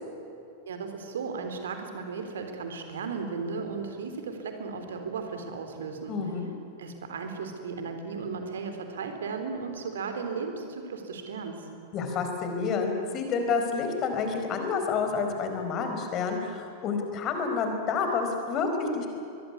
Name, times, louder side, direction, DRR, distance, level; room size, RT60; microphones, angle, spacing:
voice 1, 0.7-6.2 6.8-11.6, right 5 dB, 65° right, 6 dB, 3.6 m, -35 dB
voice 2, 6.1-6.5 11.9-19.1, left 5 dB, 35° left, 5 dB, 4.8 m, -29 dB
23.5 x 22.0 x 9.7 m, 2.7 s
figure-of-eight pair, 90°, 0 cm